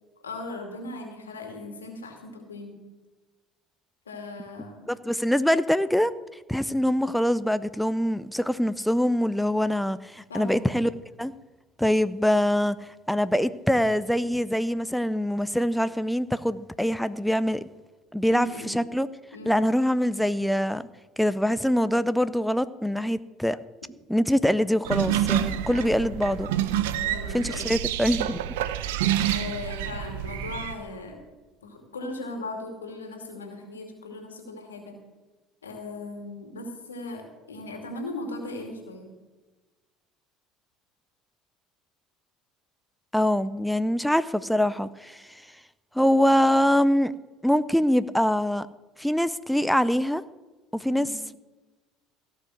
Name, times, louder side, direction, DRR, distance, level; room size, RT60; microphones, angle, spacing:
voice 1, 0.2-2.7 4.1-4.9 10.3-10.7 18.3-18.8 19.3-19.6 25.7-26.1 27.0-27.7 29.3-31.2 31.6-34.9 35.6-39.1 50.9-51.1, left 2 dB, 90° left, 3 dB, 2.4 m, -38 dB
voice 2, 4.9-6.1 6.5-10.9 11.2-11.3 11.8-17.6 18.1-19.1 19.5-20.8 21.2-23.6 24.1-26.5 27.3-28.4 29.2-29.4 43.1-45.4 45.9-47.1 47.4-48.7 49.0-50.2 50.7-51.1, equal, ahead, 14 dB, 0.5 m, -24 dB
sound 1, 24.8-30.7, right 11 dB, 75° right, 0.6 m, -28 dB
16.5 x 5.8 x 7.7 m, 1.2 s
hypercardioid pair, 65°, 0 cm